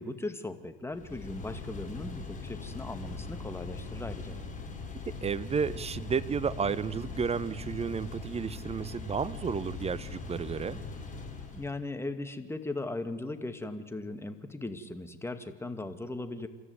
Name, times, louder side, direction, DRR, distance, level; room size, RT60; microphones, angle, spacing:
voice 1, 0.0-4.4 11.5-16.5, left 2 dB, 10° left, 8 dB, 2.3 m, -38 dB
sound 1, 0.9-11.8, left 3 dB, 25° left, 7.0 m, -41 dB
voice 2, 5.2-10.8, right 6 dB, 20° right, 18 dB, 0.9 m, -32 dB
28.0 x 13.5 x 9.6 m, 1.5 s
hypercardioid pair, 90°, 29 cm